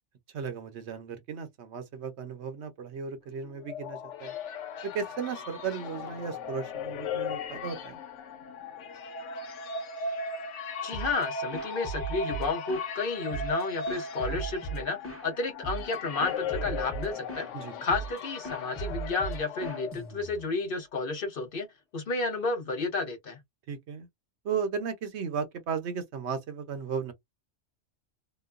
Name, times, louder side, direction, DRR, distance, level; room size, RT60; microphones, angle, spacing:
voice 1, 0.3-4.3 4.8-8.0 17.5-17.8 23.7-24.1 24.4-27.1, right 6 dB, 70° right, 1.0 m, -35 dB
sound 1, 3.4-20.4, left 4 dB, 90° left, 1.0 m, -37 dB
voice 2, 10.8-17.5 17.8-21.7 21.9-23.4, left 3 dB, 55° left, 0.8 m, -32 dB
sound 2, 10.9-11.2 11.5-12.9 13.3-15.3 15.6-15.9 16.2-17.5 17.9-18.2 18.4-20.5, right 4 dB, 15° left, 0.9 m, -38 dB
2.9 x 2.1 x 2.4 m
omnidirectional pair, 1.2 m